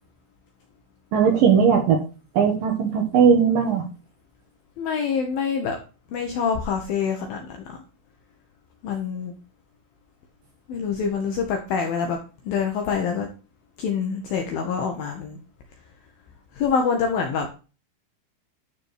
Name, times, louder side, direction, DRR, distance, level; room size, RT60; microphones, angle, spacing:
voice 1, 1.1-2.0 2.4-3.9, right 7 dB, 65° right, 1 dB, 2.4 m, -18 dB
voice 2, 4.8-5.8 6.1-7.8 8.8-9.3 10.7-12.2 12.4-13.3 13.8-15.4 16.6-17.5, left 6 dB, 75° left, 3 dB, 2.3 m, -26 dB
12.0 x 4.4 x 4.7 m, 0.33 s
omnidirectional pair, 5.4 m